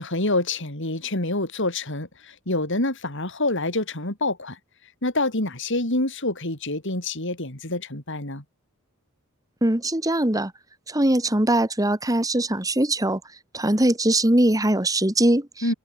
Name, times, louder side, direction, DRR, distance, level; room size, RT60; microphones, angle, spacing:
voice 1, 0.0-4.6 5.0-8.4 15.6-15.7, left 2 dB, 55° left, 5.1 m, -27 dB
voice 2, 9.6-10.5 10.9-13.2 13.5-15.7, right 1 dB, 15° right, 1.8 m, -21 dB
head